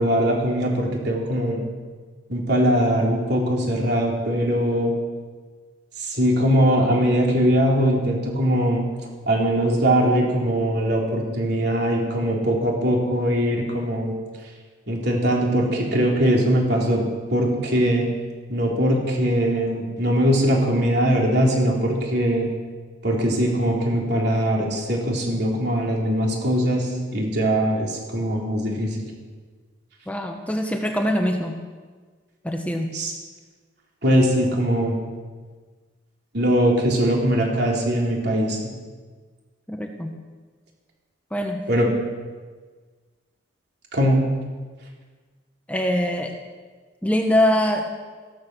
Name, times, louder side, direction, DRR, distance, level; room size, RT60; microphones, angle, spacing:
voice 1, 0.0-1.6 2.3-4.9 6.0-8.8 9.3-14.1 14.9-17.0 17.3-18.1 18.5-22.5 23.0-29.0 32.9-33.1 34.0-34.9 36.3-38.7 41.7-41.9 43.9-44.2, equal, 55° right, -1 dB, 3.4 m, -21 dB
voice 2, 30.1-31.6 32.4-32.9 39.7-40.2 41.3-41.7 45.7-46.3 47.0-47.9, left 1 dB, 5° left, 3 dB, 1.1 m, -23 dB
14.5 x 13.5 x 6.2 m, 1.5 s
head